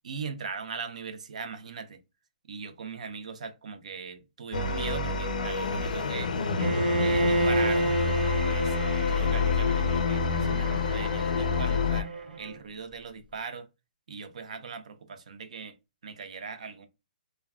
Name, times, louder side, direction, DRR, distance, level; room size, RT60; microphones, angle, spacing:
voice 1, 0.0-2.0 2.5-6.3 7.0-8.0 8.4-12.1 12.4-13.7 14.1-15.7 16.0-16.9, right 5 dB, 50° right, 0.5 m, -39 dB
sound 1, 4.5-12.0, left 5 dB, 60° left, 0.5 m, -27 dB
Bowed string instrument, 6.6-12.6, right 2 dB, 85° right, 0.7 m, -30 dB
2.2 x 2.2 x 3.4 m
hypercardioid pair, 180°, 5 cm